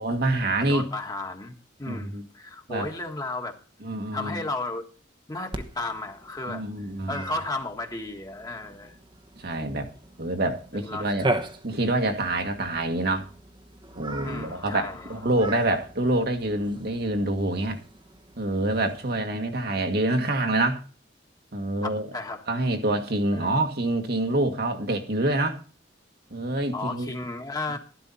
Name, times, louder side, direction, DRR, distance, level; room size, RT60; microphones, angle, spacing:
voice 1, 0.0-0.9 1.8-2.3 2.7-2.9 3.8-4.4 6.5-7.3 9.4-9.9 10.2-11.3 11.6-13.3 13.9-17.8 18.4-20.8 21.5-22.1 22.5-25.6 26.3-27.1, right 2 dB, 60° right, 1.7 m, -26 dB
voice 2, 0.6-1.5 1.8-3.6 4.1-4.8 5.3-6.6 7.1-8.9 10.7-11.1 14.1-15.1 21.8-22.4 23.3-23.5 26.7-27.8, left 2 dB, 20° left, 1.6 m, -34 dB
Cat, 5.5-19.2, right 1 dB, 25° right, 1.0 m, -38 dB
12.5 x 11.5 x 4.2 m
head